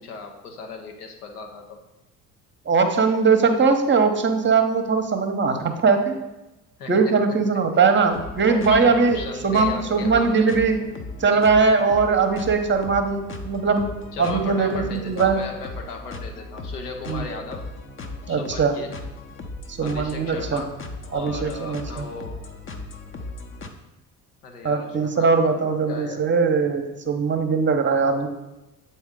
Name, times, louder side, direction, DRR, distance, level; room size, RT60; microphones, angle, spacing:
voice 1, 0.0-1.8 6.8-7.1 8.4-10.4 14.1-17.7 18.3-19.0 19.8-20.8 21.0-22.4 24.4-26.2, left 4 dB, 80° left, 3 dB, 0.9 m, -36 dB
voice 2, 2.7-6.2 6.9-10.8 11.2-13.9 14.2-15.4 17.1-17.2 18.3-18.7 19.8-20.6 21.1-22.1 24.6-28.3, right 4 dB, 25° right, 6 dB, 0.9 m, -20 dB
sound 1, 8.1-23.7, left 2 dB, 25° left, 0.8 m, -37 dB
8.0 x 4.2 x 3.7 m, 1.0 s
figure-of-eight pair, 55°, 45 cm